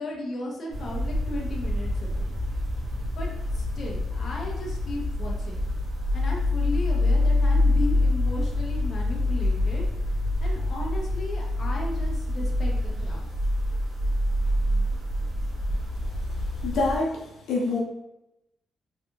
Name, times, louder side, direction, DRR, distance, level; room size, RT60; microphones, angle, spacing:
voice 1, 0.0-2.3 3.2-9.8 10.4-13.3, left 1 dB, 45° left, -2 dB, 0.9 m, -36 dB
sound 1, 0.7-17.0, left 1 dB, 45° right, 1.1 m, -26 dB
voice 2, 16.6-17.2 17.5-17.8, left 3 dB, 85° left, -2 dB, 0.8 m, -25 dB
3.6 x 3.5 x 2.4 m, 0.90 s
cardioid pair, 145°, 0 cm